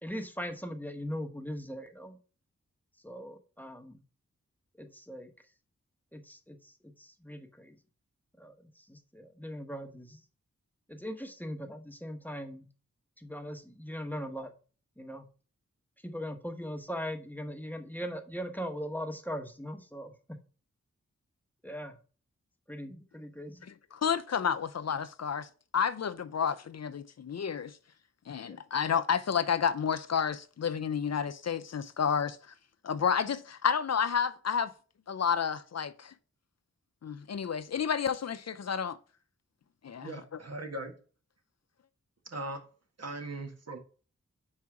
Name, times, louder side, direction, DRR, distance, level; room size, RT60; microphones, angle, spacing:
voice 1, 0.0-2.2 3.0-4.0 4.8-5.3 6.1-7.8 8.4-10.2 10.9-12.7 13.2-14.5 15.0-15.3 16.0-20.4 21.6-22.0 22.7-23.6 28.4-28.6, equal, 5° left, 1.1 m, -40 dB
voice 2, 23.6-27.8 28.3-32.4 32.8-34.7 35.1-36.1 37.0-39.0 39.8-40.4, left 7 dB, 60° left, 0.6 m, -30 dB
voice 3, 40.0-40.9 42.3-42.6 43.0-43.8, right 2 dB, 55° right, 1.7 m, -39 dB
5.6 x 4.8 x 4.8 m
cardioid pair, 45°, 30 cm